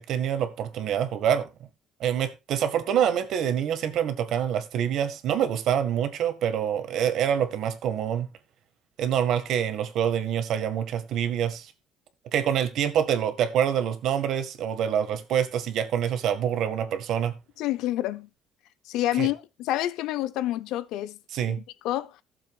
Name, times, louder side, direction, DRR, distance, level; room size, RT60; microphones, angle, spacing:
voice 1, 0.0-1.5 2.0-8.3 9.0-11.7 12.3-17.3 19.2-19.3 21.3-21.6, right 9 dB, 55° right, 1.7 m, -26 dB
voice 2, 17.6-18.3 18.9-21.2 21.8-22.2, left 14 dB, 75° left, 0.7 m, -28 dB
16.0 x 7.4 x 2.4 m
cardioid pair, 160°, 0 cm